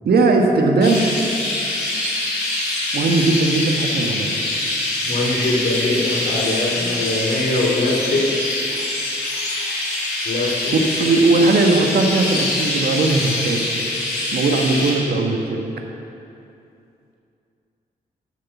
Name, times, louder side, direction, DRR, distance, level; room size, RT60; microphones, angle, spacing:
voice 1, 0.0-1.1 2.9-4.3 10.7-13.6 14.3-15.6, right 3 dB, 70° right, 2 dB, 1.4 m, -18 dB
Chirp tweet, 0.8-14.9, left 2 dB, 90° left, 2.7 m, -24 dB
voice 2, 5.1-8.6 10.2-10.7, left 2 dB, 65° left, -3 dB, 3.2 m, -22 dB
12.0 x 6.7 x 7.1 m, 2.7 s
cardioid pair, 60°, 17 cm